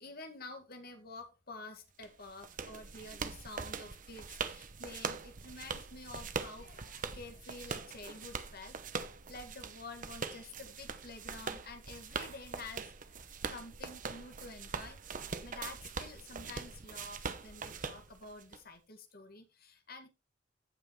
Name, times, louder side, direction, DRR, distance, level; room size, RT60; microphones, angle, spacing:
voice 1, 0.0-8.8 9.3-15.0 15.4-20.1, left 3 dB, 55° left, 2.0 m, -49 dB
sound 1, 2.0-18.6, right 5 dB, 45° right, 0.9 m, -42 dB
16.0 x 5.7 x 3.2 m
head